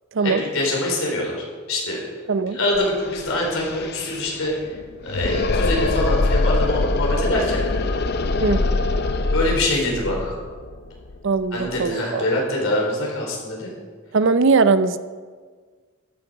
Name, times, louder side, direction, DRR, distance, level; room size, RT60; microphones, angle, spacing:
voice 1, 0.2-2.0 2.5-4.5 5.0-7.6 9.3-10.3 11.5-13.7, left 1 dB, 75° left, -2 dB, 4.1 m, -24 dB
sound 1, 2.8-2.9 3.0-11.9, left 2 dB, 50° left, 0.6 m, -24 dB
voice 2, 11.2-12.3 14.1-15.0, right 4 dB, 60° right, 12 dB, 0.6 m, -20 dB
13.0 x 9.9 x 5.0 m, 1.5 s
head